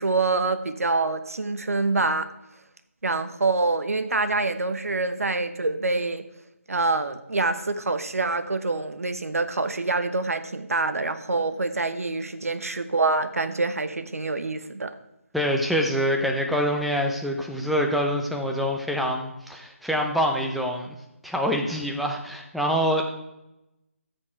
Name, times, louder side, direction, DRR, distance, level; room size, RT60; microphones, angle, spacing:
voice 1, 0.0-2.3 3.0-6.2 6.7-14.9, right 3 dB, 80° right, 10 dB, 1.0 m, -26 dB
voice 2, 15.3-20.9 21.2-23.1, equal, ahead, 1 dB, 0.6 m, -25 dB
12.0 x 6.5 x 4.4 m, 0.91 s
figure-of-eight pair, 160°, 8 cm